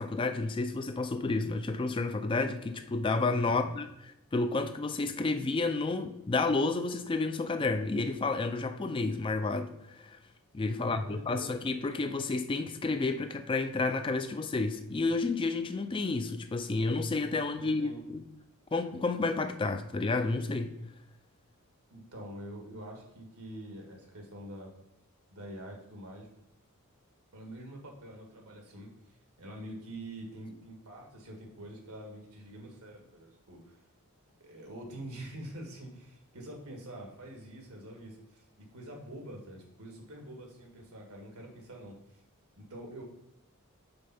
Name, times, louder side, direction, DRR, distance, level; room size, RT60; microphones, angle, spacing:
voice 1, 0.0-3.9 4.3-10.2 10.5-18.2 18.7-20.8, left 3 dB, 25° left, 0.3 m, -30 dB
voice 2, 3.4-3.8 10.8-11.6 17.6-18.0 21.9-24.8 25.3-26.3 27.3-33.8 34.4-42.2 42.6-43.0, right 1 dB, 85° right, 1.7 m, -46 dB
5.2 x 4.4 x 5.6 m
head